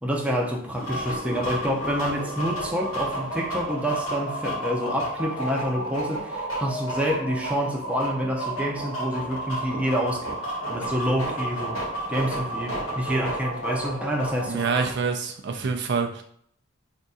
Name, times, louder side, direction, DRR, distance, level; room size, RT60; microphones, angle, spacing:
voice 1, 0.0-11.8 12.1-14.7, equal, 5° right, 0.6 m, -28 dB
sound 1, 0.8-14.9, right 1 dB, 90° left, 1.3 m, -31 dB
voice 2, 14.5-16.2, right 5 dB, 55° right, 0.5 m, -26 dB
3.5 x 2.6 x 4.0 m
head